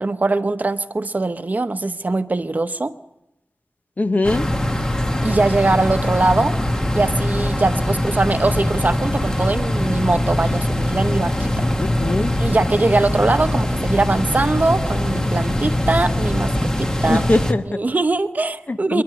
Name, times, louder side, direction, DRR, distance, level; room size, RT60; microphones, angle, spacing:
voice 1, 0.0-2.9 5.2-6.6 6.9-11.7 12.4-17.3 17.6-19.0, right 2 dB, 40° right, 10 dB, 0.9 m, -21 dB
voice 2, 4.0-4.5 11.8-12.4 17.1-17.8 18.7-19.0, left 2 dB, 40° left, 9 dB, 1.0 m, -21 dB
sound 1, 4.2-17.5, left 1 dB, 15° left, 1.5 m, -22 dB
27.5 x 11.5 x 9.6 m, 0.90 s
wide cardioid pair, 90°, 4 cm